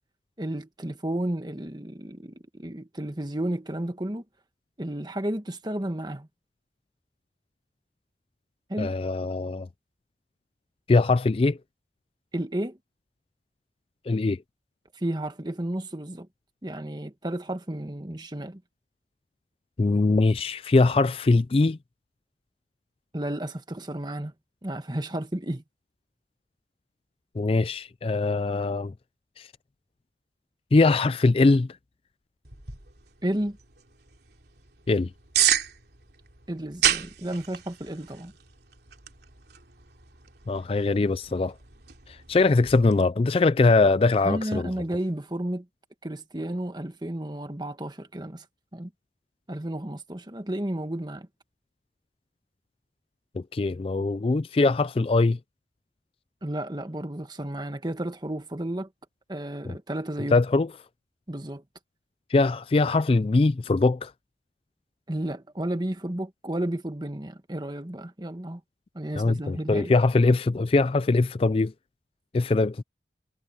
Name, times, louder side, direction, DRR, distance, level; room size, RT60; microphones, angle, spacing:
voice 1, 0.4-4.2 4.8-6.3 8.7-8.9 12.3-12.8 14.9-16.3 16.6-18.6 23.1-24.3 24.6-25.6 33.2-33.6 36.5-38.3 44.2-45.6 46.0-48.4 48.7-48.9 49.5-51.3 56.4-58.9 59.3-60.4 61.3-61.6 65.1-68.6 68.9-69.9, right 1 dB, 25° right, 1.4 m, -32 dB
voice 2, 8.8-9.7 10.9-11.6 14.1-14.4 19.8-21.8 27.4-28.9 29.4-29.5 30.7-31.7 34.9-35.1 40.5-41.5 42.1-44.7 53.4-55.4 60.3-60.7 62.3-64.1 69.1-71.7 72.3-72.8, left 3 dB, 30° left, 0.4 m, -22 dB
sound 1, 32.4-43.0, right 10 dB, 65° right, 3.0 m, -32 dB
head